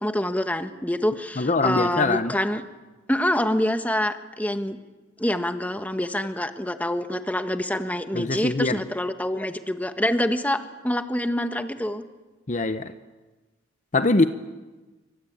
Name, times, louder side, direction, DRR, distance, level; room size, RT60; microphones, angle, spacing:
voice 1, 0.0-2.6 3.1-4.8 5.2-12.0, left 1 dB, 10° left, 8 dB, 1.4 m, -26 dB
voice 2, 1.4-2.3 8.1-8.8 12.5-12.9 13.9-14.3, left 3 dB, 40° left, 10 dB, 0.9 m, -22 dB
27.5 x 24.0 x 8.8 m, 1.2 s
head